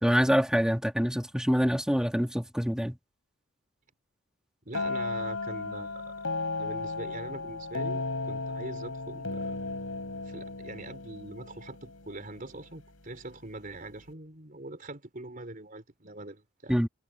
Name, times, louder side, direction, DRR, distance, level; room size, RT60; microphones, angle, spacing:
voice 1, 0.0-3.0 16.7-16.9, equal, 5° right, 1.9 m, -25 dB
voice 2, 4.6-6.2 6.6-9.6 10.3-16.7, right 2 dB, 40° right, 4.2 m, -43 dB
sound 1, 4.7-12.5, left 3 dB, 80° left, 4.6 m, -35 dB
head